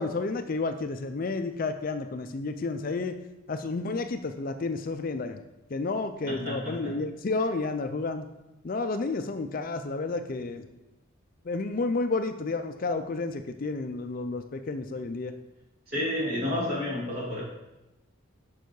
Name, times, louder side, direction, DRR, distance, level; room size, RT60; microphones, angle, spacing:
voice 1, 0.0-3.2 3.5-5.4 5.7-8.3 8.6-10.6 11.5-15.3, left 3 dB, 40° left, 8 dB, 0.4 m, -31 dB
voice 2, 6.3-7.0 15.9-17.4, left 1 dB, 45° right, -6 dB, 3.0 m, -30 dB
6.8 x 5.5 x 4.7 m, 1.0 s
head